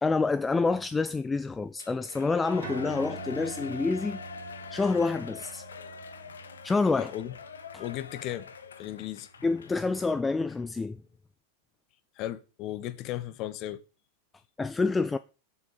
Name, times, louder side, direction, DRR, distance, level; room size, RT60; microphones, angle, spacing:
voice 1, 0.0-4.2 4.7-5.6 6.6-7.1 7.7-7.8 9.4-11.0 14.6-15.2, left 3 dB, 10° left, 0.4 m, -27 dB
Shout / Cheering, 1.8-10.1 10.5-10.6, left 5 dB, 70° left, 0.9 m, -44 dB
sound 1, 2.6-9.5, right 8 dB, 50° right, 1.8 m, -47 dB
voice 2, 6.9-7.4 7.8-8.5 8.8-9.3 12.2-13.8, left 13 dB, 40° left, 0.8 m, -35 dB
7.0 x 6.9 x 6.4 m
figure-of-eight pair, 90°, 0 cm